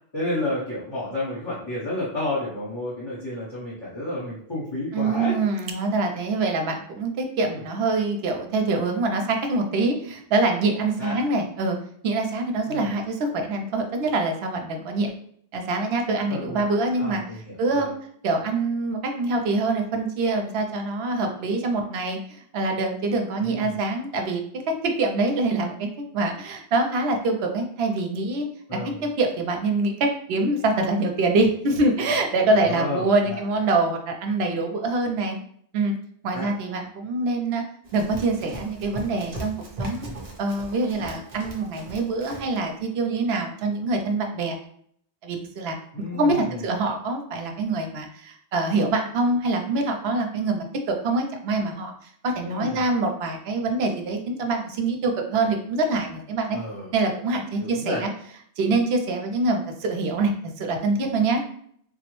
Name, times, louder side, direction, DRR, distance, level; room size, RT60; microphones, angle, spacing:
voice 1, 0.1-5.4 7.4-7.6 11.0-11.2 12.6-12.9 16.3-16.6 17.0-17.9 23.4-23.8 28.7-29.0 32.6-33.4 36.3-36.5 45.9-46.8 52.4-52.8 56.5-56.9 57.6-58.0, left 1 dB, 25° left, -8 dB, 0.8 m, -31 dB
voice 2, 4.9-11.8 12.0-15.1 15.5-17.2 17.6-17.9 18.2-25.9 26.1-28.5 29.2-35.4 35.7-35.9 36.2-37.6 37.9-39.5 39.8-40.1 40.4-44.6 45.2-45.8 46.2-50.6 51.0-56.6 56.9-58.1 58.6-60.3 60.6-61.4, right 3 dB, 75° right, 3 dB, 0.8 m, -25 dB
Run, 37.8-42.6, right 1 dB, 45° right, 0.6 m, -38 dB
3.7 x 2.0 x 3.0 m, 0.64 s
omnidirectional pair, 1.1 m